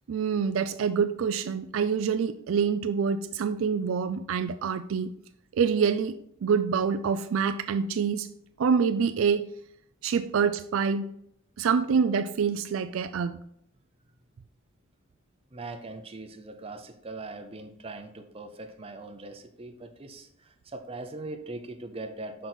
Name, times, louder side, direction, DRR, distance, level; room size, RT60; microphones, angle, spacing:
voice 1, 0.1-5.1 5.6-8.3 8.6-9.4 10.0-11.1 11.6-13.4, right 6 dB, 70° right, 11 dB, 0.4 m, -26 dB
voice 2, 15.5-22.5, right 2 dB, 30° right, 6 dB, 0.7 m, -41 dB
6.1 x 5.2 x 4.3 m, 0.72 s
head